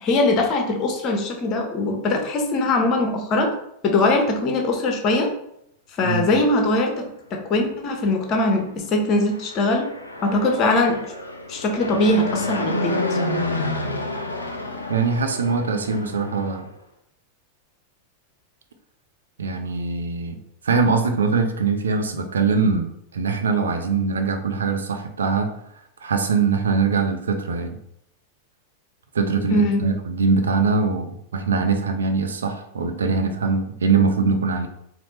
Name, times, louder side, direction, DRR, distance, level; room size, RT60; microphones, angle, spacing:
voice 1, 0.0-3.5 3.8-5.3 6.0-9.9 10.2-11.1 11.5-13.2 29.5-29.8, left 2 dB, 35° left, 3 dB, 0.7 m, -21 dB
Fixed-wing aircraft airplane, 9.2-16.6, left 2 dB, 80° left, 0.5 m, -29 dB
voice 2, 14.9-16.7 19.4-20.4 20.6-25.6 26.0-27.8 29.1-34.7, right 4 dB, 70° right, 6 dB, 0.4 m, -22 dB
4.1 x 2.0 x 3.0 m, 0.73 s
figure-of-eight pair, 90°, 0 cm